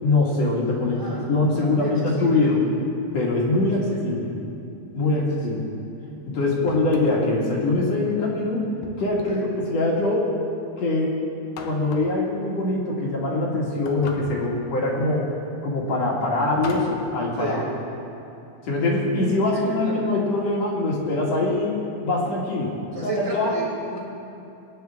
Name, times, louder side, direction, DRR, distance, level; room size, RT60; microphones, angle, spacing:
voice 1, 0.0-2.7 3.1-4.3 4.9-5.7 6.3-8.6 9.0-10.3 10.8-11.1 11.6-15.3 15.6-17.6 18.6-21.8 22.0-22.7 23.0-23.5, left 2 dB, 50° left, -3 dB, 2.6 m, -23 dB
voice 2, 0.9-2.6 3.8-4.1 5.0-5.5 6.5-6.7 7.0-7.1 9.1-9.5 14.3-14.6 17.3-17.7 19.5-20.0 22.9-24.0, right 1 dB, 10° right, -5 dB, 1.8 m, -34 dB
sound 1, 6.7-7.4 8.8-9.5 11.6-12.2 13.9-14.6 16.6-17.0, left 5 dB, 80° left, 2.8 m, -39 dB
23.5 x 9.8 x 3.5 m, 2.8 s
omnidirectional pair, 4.4 m